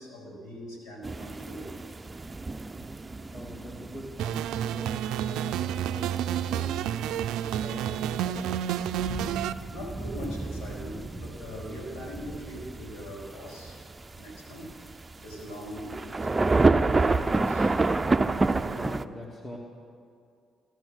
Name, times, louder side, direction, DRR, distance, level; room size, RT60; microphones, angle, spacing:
voice 1, 0.0-1.7 9.7-13.8 14.1-14.7 15.2-17.7, equal, 85° left, -3 dB, 4.2 m, -41 dB
sound 1, 1.0-19.0, right 3 dB, 25° right, 0.6 m, -30 dB
voice 2, 2.9-6.7 7.0-8.9 18.6-19.6, left 1 dB, 20° left, -2 dB, 2.2 m, -44 dB
sound 2, 4.2-9.5, right 10 dB, 85° right, 0.4 m, -30 dB
16.5 x 12.5 x 6.5 m, 2.4 s
supercardioid pair, 65°, 0 cm